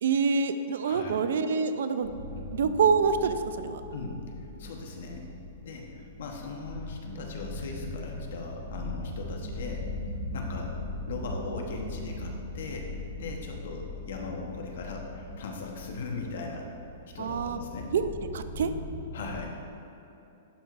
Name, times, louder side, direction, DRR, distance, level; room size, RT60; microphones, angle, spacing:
voice 1, 0.0-2.1 2.5-3.8 17.2-17.6 17.9-18.1 18.3-18.7, right 5 dB, 75° right, 11 dB, 0.4 m, -26 dB
voice 2, 0.8-1.2 2.4-2.5 3.9-4.2 4.6-5.3 5.6-9.9 10.3-10.8 11.0-16.7 17.1-17.9 19.1-19.6, left 3 dB, 70° left, 1 dB, 1.0 m, -39 dB
sound 1, 2.0-19.4, left 1 dB, 35° right, 1.3 m, -40 dB
11.5 x 4.6 x 2.5 m, 2.9 s
hypercardioid pair, 155°, 0 cm